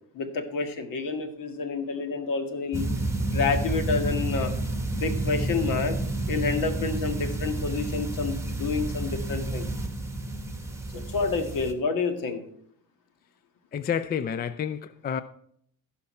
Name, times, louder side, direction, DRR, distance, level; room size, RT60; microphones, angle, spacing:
voice 1, 0.1-2.9 3.3-4.5 4.9-6.0 6.3-9.7 10.9-12.4, left 4 dB, 65° left, 1.9 m, -29 dB
sound 1, 2.7-11.7, right 2 dB, 10° right, 1.5 m, -30 dB
voice 2, 13.7-15.2, left 8 dB, 25° left, 0.4 m, -29 dB
15.5 x 5.8 x 4.3 m
cardioid pair, 95°, 36 cm